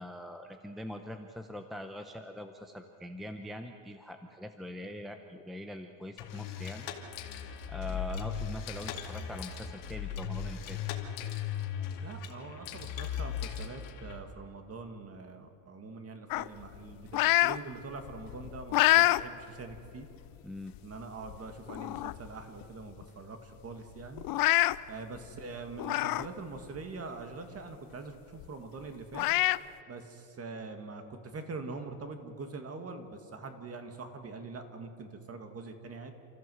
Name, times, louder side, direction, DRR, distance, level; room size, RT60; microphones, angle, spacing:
voice 1, 0.0-6.9 7.7-10.8 20.4-20.7, left 1 dB, ahead, 6 dB, 0.7 m, -43 dB
sound 1, 6.2-14.2, left 8 dB, 85° left, 2.5 m, -38 dB
voice 2, 12.0-20.1 20.8-24.3 24.9-29.3 29.9-36.1, right 3 dB, 30° right, 7 dB, 2.1 m, -44 dB
sound 2, 16.3-17.6 18.0-19.2 19.7-19.9 20.8-20.9 21.3-21.4 21.7-22.3 22.6-22.7 23.0-23.1 24.2-24.8 25.8-26.3 26.7-26.8 28.4-28.5 29.1-29.6, left 18 dB, 50° left, 0.5 m, -26 dB
29.0 x 14.5 x 7.8 m, 2.7 s
cardioid pair, 150°, 46 cm